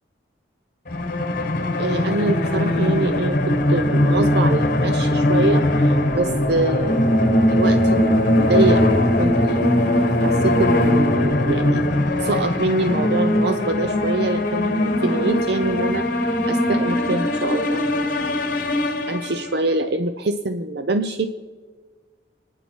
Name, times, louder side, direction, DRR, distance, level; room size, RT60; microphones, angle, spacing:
sound 1, 0.9-19.6, left 1 dB, 45° left, 1.2 m, -20 dB
voice 1, 1.8-7.0 7.6-11.9 12.2-18.4 19.1-21.3, right 2 dB, 55° right, 8 dB, 0.6 m, -25 dB
29.0 x 9.8 x 4.6 m, 1.5 s
head